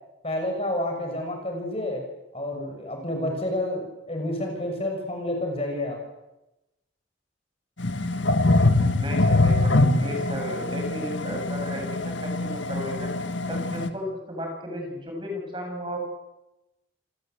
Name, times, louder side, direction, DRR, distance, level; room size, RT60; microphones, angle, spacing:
voice 1, 0.2-2.0 2.3-6.0, left 1 dB, 30° left, 3 dB, 6.3 m, -29 dB
sound 1, 7.8-13.9, left 2 dB, 80° left, 1.9 m, -23 dB
voice 2, 9.0-13.1 13.5-16.0, equal, 25° right, 2 dB, 7.7 m, -34 dB
28.0 x 20.5 x 8.1 m, 0.96 s
head